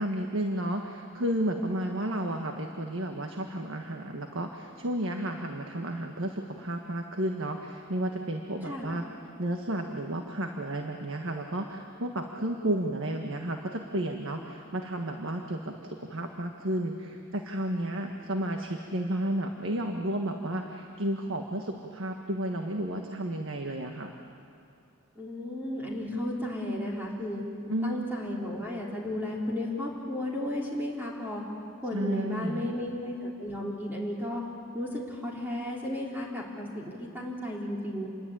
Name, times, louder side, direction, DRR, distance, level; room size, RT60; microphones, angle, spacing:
voice 1, 0.0-9.0 9.4-24.1 27.7-28.1 31.9-32.7, right 1 dB, 65° right, 3 dB, 1.6 m, -32 dB
voice 2, 8.6-8.9 25.2-27.4 27.8-31.4 31.8-34.4 34.7-38.1, left 1 dB, 10° right, -3 dB, 3.5 m, -34 dB
28.0 x 22.0 x 8.8 m, 2.6 s
head